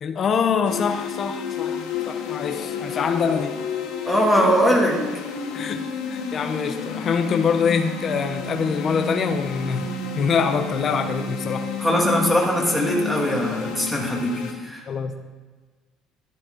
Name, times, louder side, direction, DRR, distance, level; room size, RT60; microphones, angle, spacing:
voice 1, 0.0-3.6 5.5-11.7 11.9-12.1 14.9-15.2, left 6 dB, 35° left, 7 dB, 0.7 m, -25 dB
sound 1, 0.6-14.5, left 5 dB, 85° left, 1.7 m, -31 dB
voice 2, 4.1-5.0 11.8-14.8, equal, ahead, -1 dB, 2.3 m, -21 dB
12.0 x 11.0 x 3.9 m, 1.4 s
cardioid pair, 135°, 0 cm